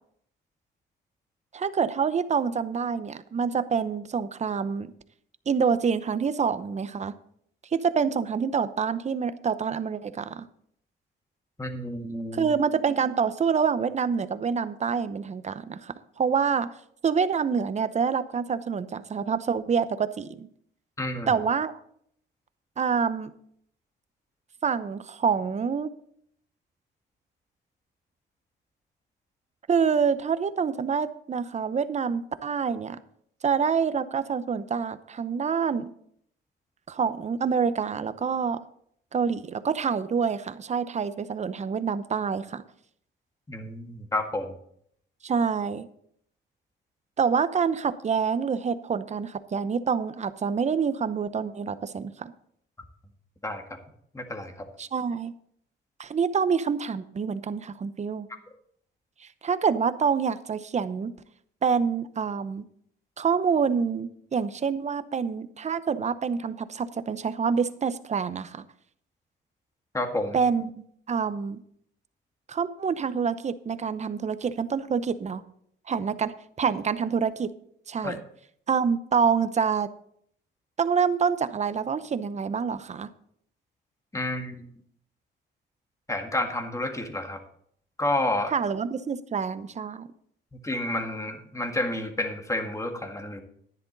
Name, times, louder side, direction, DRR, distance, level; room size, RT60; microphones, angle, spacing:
voice 1, 1.5-4.9 5.5-7.1 7.7-10.5 12.3-16.7 17.0-20.5 21.3-21.7 22.8-23.3 24.6-25.9 29.7-33.0 33.4-35.9 36.9-38.6 39.1-42.6 45.2-45.9 47.2-52.3 54.8-55.3 56.0-58.3 59.4-61.1 61.6-62.6 63.2-68.6 70.3-70.7 71.1-71.6 72.5-75.4 75.9-77.5 77.9-78.2 78.7-79.9 80.8-83.1 88.5-90.1, right 6 dB, 35° right, 13 dB, 0.8 m, -26 dB
voice 2, 11.6-12.5 21.0-21.3 43.5-44.5 53.4-53.6 54.1-54.5 69.9-70.4 78.0-78.1 84.1-84.6 86.1-87.4 88.0-88.5 90.5-93.4, left 1 dB, 15° left, 5 dB, 1.8 m, -30 dB
11.0 x 10.5 x 4.0 m, 0.67 s
cardioid pair, 90°, 20 cm